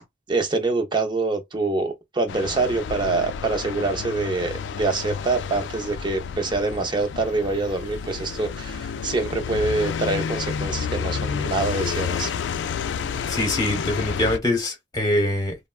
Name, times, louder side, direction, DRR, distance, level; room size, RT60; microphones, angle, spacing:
voice 1, 0.3-12.3, right 3 dB, 25° right, 0.6 m, -25 dB
sound 1, 2.3-14.4, left 6 dB, 70° left, 0.3 m, -30 dB
voice 2, 13.3-15.5, left 1 dB, 20° left, 0.9 m, -23 dB
3.4 x 2.1 x 2.2 m
head